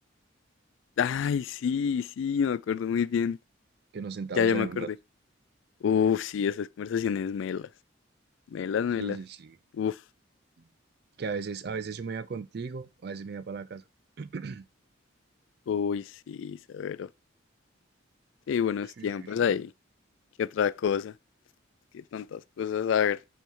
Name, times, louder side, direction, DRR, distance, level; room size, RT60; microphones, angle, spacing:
voice 1, 1.0-3.4 4.4-4.9 5.8-7.7 8.5-9.2 9.7-10.0 15.7-17.1 18.5-19.7 20.4-21.1 21.9-23.2, left 7 dB, 70° left, 0.3 m, -28 dB
voice 2, 3.9-4.9 9.0-9.6 10.6-10.7 11.2-13.8 14.2-14.7 19.0-19.3, right 5 dB, 50° right, 0.4 m, -36 dB
5.4 x 4.6 x 4.5 m
head